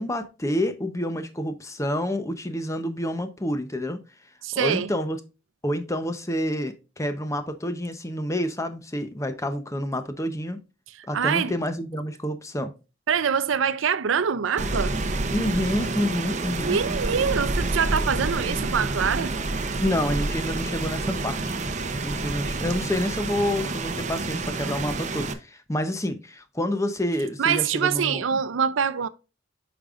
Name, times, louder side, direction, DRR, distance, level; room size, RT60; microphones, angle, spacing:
voice 1, 0.0-4.0 4.5-5.2 5.6-10.6 11.1-12.7 15.3-16.8 19.8-21.6 22.0-28.4, left 1 dB, 15° left, 0.8 m, -28 dB
voice 2, 4.4-4.9 11.0-11.5 13.1-15.0 16.6-19.4 27.4-29.1, right 7 dB, 90° right, 0.5 m, -24 dB
Rain, 14.6-25.3, right 2 dB, 40° right, 0.8 m, -28 dB
8.5 x 5.3 x 2.5 m
head